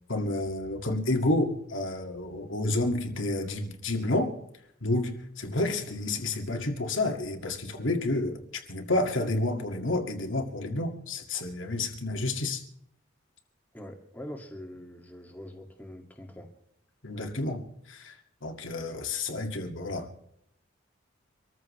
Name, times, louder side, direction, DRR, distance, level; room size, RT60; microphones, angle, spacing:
voice 1, 0.1-4.3 4.8-12.6 17.0-18.2 18.4-20.3, left 2 dB, 75° left, 2.3 m, -30 dB
voice 2, 13.7-16.5, left 1 dB, 10° left, 2.2 m, -43 dB
26.0 x 14.0 x 3.3 m
head